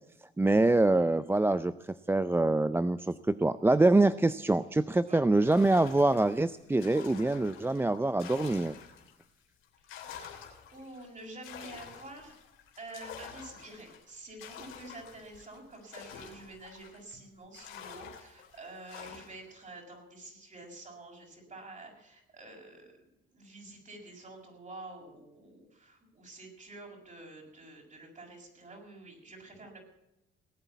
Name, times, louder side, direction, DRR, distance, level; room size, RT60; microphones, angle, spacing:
voice 1, 0.4-8.8, right 2 dB, 10° right, 14 dB, 0.5 m, -25 dB
sound 1, 5.4-9.3 9.6-17.1 17.5-19.5, left 8 dB, 90° left, 3.2 m, -48 dB
voice 2, 9.9-10.3 10.7-12.4 12.8-22.9 23.3-29.8, right 2 dB, 40° right, 1 dB, 6.9 m, -48 dB
18.5 x 8.8 x 8.3 m, 0.88 s
cardioid pair, 90°, 20 cm